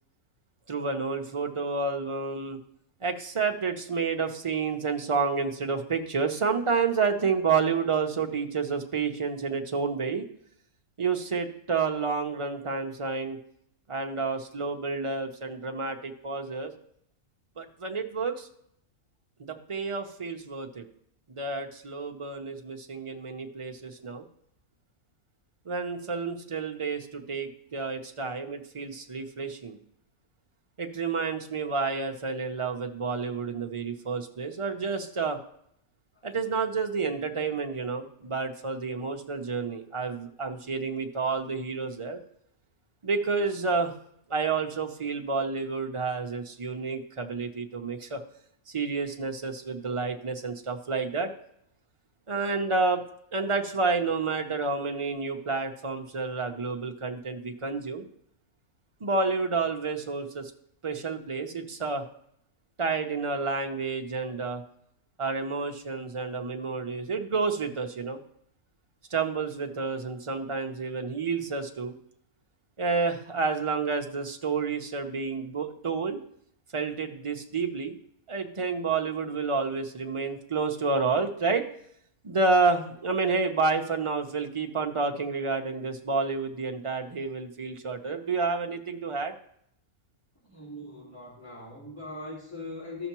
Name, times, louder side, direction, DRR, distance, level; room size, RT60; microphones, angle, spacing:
voice 1, 0.7-2.6 3.0-10.2 11.0-13.4 13.9-16.7 17.6-18.5 19.4-20.9 21.3-24.2 25.7-29.8 30.8-35.4 36.2-42.2 43.0-43.9 44.3-48.2 48.7-51.3 52.3-53.0 53.3-58.0 59.0-60.5 60.8-62.0 62.8-64.6 65.2-68.2 69.1-71.9 72.8-76.2 76.7-77.9 78.3-81.6 82.2-89.3, right 4 dB, 35° right, 4 dB, 0.5 m, -29 dB
voice 2, 90.4-93.1, left 2 dB, 10° left, -8 dB, 3.6 m, -40 dB
14.5 x 5.6 x 3.0 m, 0.72 s
omnidirectional pair, 1.5 m